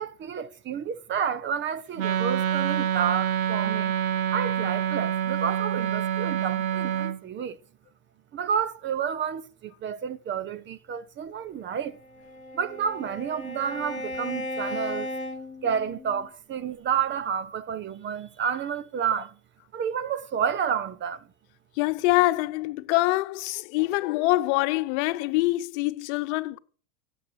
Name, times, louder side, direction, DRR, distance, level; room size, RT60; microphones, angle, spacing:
voice 1, 0.0-3.9 4.3-7.6 8.3-12.0 12.5-15.1 15.6-19.3 19.7-21.2, right 7 dB, 25° right, 0.9 m, -30 dB
Wind instrument woodwind instrument, 2.0-7.2, right 10 dB, 80° right, 1.3 m, -26 dB
Bowed string instrument, 11.8-16.3, left 1 dB, 15° left, 4.1 m, -36 dB
voice 2, 21.8-26.6, left 19 dB, 55° left, 1.1 m, -25 dB
16.5 x 8.1 x 6.4 m
hypercardioid pair, 105°, 41 cm